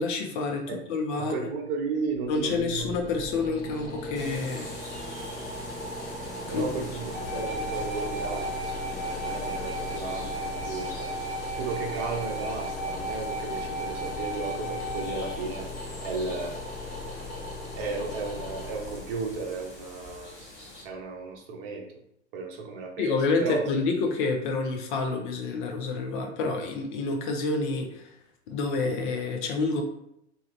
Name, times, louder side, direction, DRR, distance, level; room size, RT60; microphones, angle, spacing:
voice 1, 0.0-1.4 2.3-4.8 6.5-6.7 23.0-28.1 28.5-29.8, left 3 dB, 45° left, 3 dB, 0.6 m, -28 dB
voice 2, 1.2-2.9 6.5-11.1 11.5-15.7 16.0-16.6 17.8-20.4 20.8-21.9 22.3-23.6, right 4 dB, 50° right, 1 dB, 0.8 m, -34 dB
sound 1, 2.1-21.0, left 2 dB, 25° left, 1.0 m, -38 dB
sound 2, 4.1-20.9, left 1 dB, 70° left, 1.1 m, -45 dB
sound 3, 7.1-15.4, right 2 dB, ahead, 0.3 m, -35 dB
2.8 x 2.3 x 3.1 m, 0.77 s
figure-of-eight pair, 90°, 36 cm